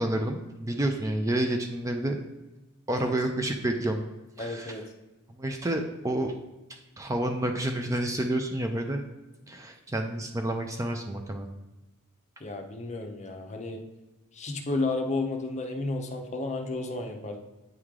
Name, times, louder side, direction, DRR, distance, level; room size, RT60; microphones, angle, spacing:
voice 1, 0.0-2.2 2.9-4.0 4.4-4.8 5.3-6.3 6.7-9.0 9.5-11.5, right 1 dB, 15° right, 4 dB, 0.4 m, -29 dB
voice 2, 4.4-4.9 12.4-13.8 14.3-17.4, left 2 dB, 30° left, 4 dB, 0.7 m, -32 dB
9.1 x 3.2 x 3.6 m, 1.0 s
head